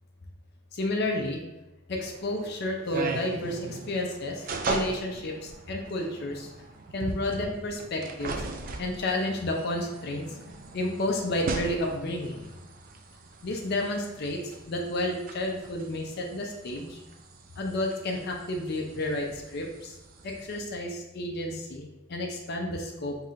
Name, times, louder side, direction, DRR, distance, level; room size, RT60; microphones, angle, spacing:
voice 1, 0.7-1.4 1.9-6.5 6.9-8.4 8.8-10.3 10.7-12.5 13.4-14.4 14.7-17.0 17.6-19.9 20.2-23.2, left 1 dB, 50° left, 1 dB, 0.5 m, -31 dB
sound 1, 1.9-20.6, right 3 dB, 40° right, 0.4 m, -39 dB
5.8 x 2.7 x 2.4 m, 1.0 s
head